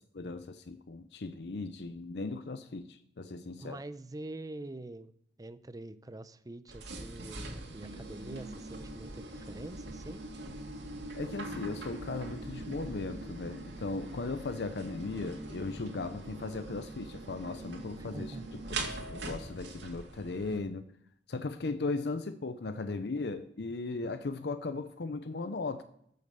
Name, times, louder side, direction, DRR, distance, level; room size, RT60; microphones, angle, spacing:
voice 1, 0.1-3.8 11.1-18.4 18.8-20.9 21.3-25.8, left 3 dB, 65° left, 10 dB, 0.6 m, -37 dB
voice 2, 3.6-5.1 5.4-10.2 18.0-18.5, right 2 dB, 20° right, 14 dB, 0.5 m, -45 dB
sound 1, 6.7-20.6, right 2 dB, 80° right, 2.3 m, -42 dB
14.0 x 6.6 x 6.8 m, 0.70 s
head